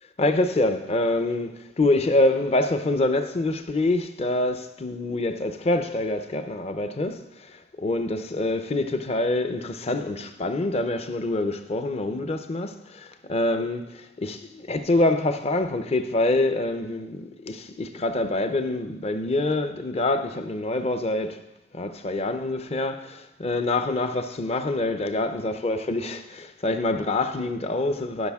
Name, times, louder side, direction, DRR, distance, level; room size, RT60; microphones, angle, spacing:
voice 1, 0.2-21.4 21.7-28.3, left 2 dB, 35° left, 0.6 m, -26 dB
14.5 x 5.8 x 3.6 m
head